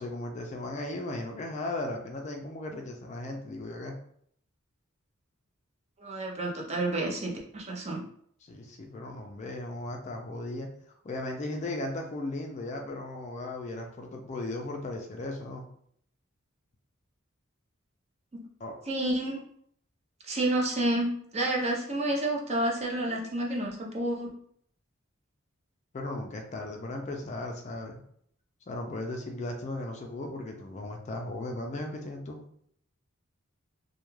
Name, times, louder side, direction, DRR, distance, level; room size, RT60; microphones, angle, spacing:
voice 1, 0.0-3.9 8.4-10.7 11.0-15.7 18.6-18.8 25.9-28.0 28.7-32.4, left 2 dB, 35° left, 2 dB, 0.4 m, -36 dB
voice 2, 6.0-8.0 18.3-18.4 18.9-19.4 20.2-24.3, right 1 dB, 30° right, -1 dB, 0.5 m, -30 dB
2.2 x 2.2 x 3.0 m, 0.65 s
head